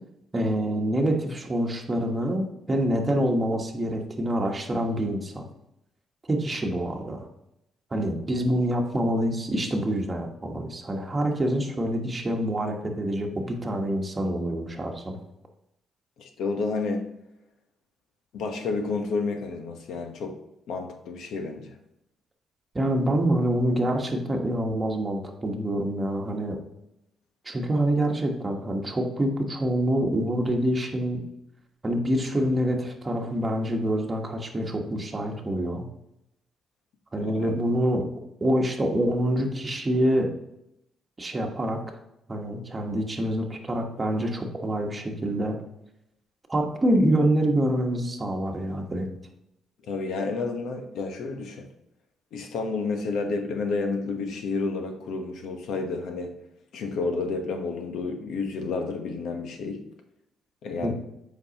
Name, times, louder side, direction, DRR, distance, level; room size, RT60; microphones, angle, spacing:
voice 1, 0.3-5.5 6.3-7.3 7.9-15.2 22.7-26.6 27.4-31.2 31.8-35.9 37.1-38.1 38.4-40.3 41.2-41.8 42.3-45.6 46.5-49.1 60.8-60.9, right 1 dB, 25° right, 1 dB, 1.3 m, -26 dB
voice 2, 16.2-17.0 18.3-20.3 20.7-21.7 37.2-37.5 49.8-51.7 52.3-56.3 56.7-59.8 60.6-60.9, left 4 dB, 75° left, 4 dB, 1.1 m, -30 dB
7.9 x 5.3 x 3.0 m, 0.84 s
cardioid pair, 90°, 0 cm